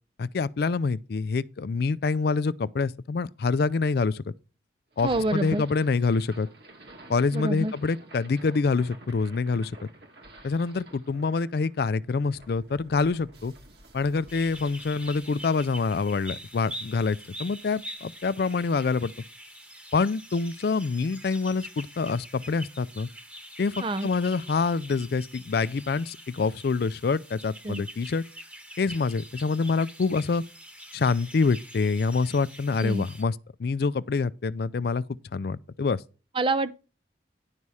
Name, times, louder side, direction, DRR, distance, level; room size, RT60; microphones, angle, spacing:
voice 1, 0.2-4.2 5.0-6.5 7.1-9.7 10.4-13.5 13.9-19.1 19.9-23.1 23.6-28.2 28.8-30.4 30.9-35.0 35.3-36.0, left 4 dB, 55° left, 0.4 m, -26 dB
sound 1, 4.9-17.1, right 1 dB, 60° right, 1.8 m, -50 dB
voice 2, 5.0-5.6 7.3-7.7 23.8-24.1 27.6-27.8 32.8-33.1 36.4-36.7, right 2 dB, 30° right, 0.5 m, -27 dB
sound 2, 14.3-33.2, equal, 5° right, 1.1 m, -45 dB
10.5 x 5.6 x 4.8 m
head